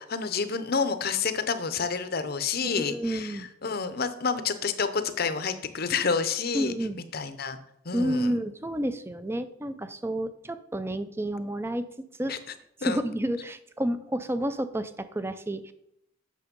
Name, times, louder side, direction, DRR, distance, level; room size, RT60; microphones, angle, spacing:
voice 1, 0.0-6.7 7.1-7.6 7.8-8.4 12.3-12.4 12.8-13.0, left 5 dB, 45° left, 11 dB, 0.7 m, -29 dB
voice 2, 2.7-3.5 6.5-7.0 7.9-11.9 12.2-12.4 12.8-15.7, right 1 dB, 10° right, 11 dB, 0.5 m, -30 dB
8.5 x 6.4 x 5.2 m, 0.76 s
head